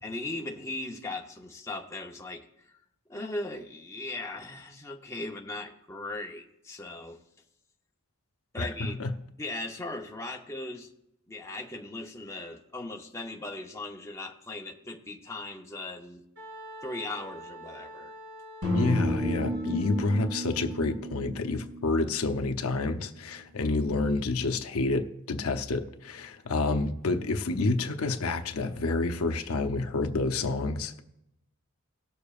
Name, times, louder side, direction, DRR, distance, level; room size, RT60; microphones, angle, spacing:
voice 1, 0.0-2.7 3.1-7.2 8.5-9.0 9.4-10.9 11.3-16.2 16.8-18.1, left 2 dB, 15° left, 0.7 m, -38 dB
voice 2, 8.6-9.1 18.7-31.0, left 3 dB, 80° left, 0.7 m, -29 dB
Wind instrument woodwind instrument, 16.4-21.0, equal, 50° right, 2.4 m, -46 dB
sound 1, 18.6-22.8, equal, 70° right, 1.8 m, -32 dB
18.0 x 6.9 x 2.4 m
head